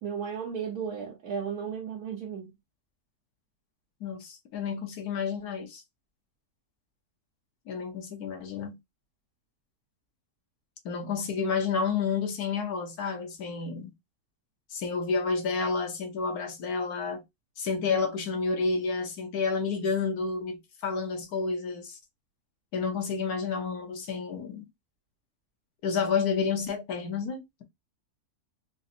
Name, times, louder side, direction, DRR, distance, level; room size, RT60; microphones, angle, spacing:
voice 1, 0.0-2.5, right 7 dB, 75° right, 1.3 m, -34 dB
voice 2, 4.0-5.8 7.7-8.8 10.8-13.9 14.7-17.2 17.6-22.0 22.7-24.7 25.8-27.6, left 5 dB, 80° left, 1.3 m, -30 dB
3.9 x 2.5 x 2.5 m
omnidirectional pair, 1.6 m